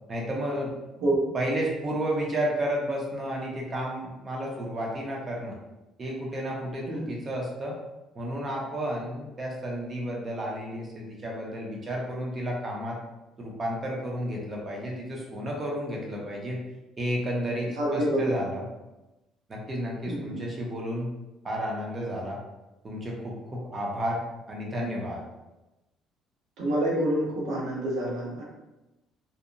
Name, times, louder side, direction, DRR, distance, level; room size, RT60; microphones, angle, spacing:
voice 1, 0.1-0.7 1.3-5.6 6.0-7.8 8.1-13.0 13.4-16.6 17.0-18.6 19.5-21.1 21.4-22.4 22.8-25.2, equal, 30° right, -2 dB, 0.6 m, -32 dB
voice 2, 17.8-18.4 20.1-20.4 26.6-28.4, right 1 dB, 85° right, -4 dB, 0.9 m, -27 dB
2.7 x 2.0 x 2.5 m, 1.0 s
cardioid pair, 140°, 0 cm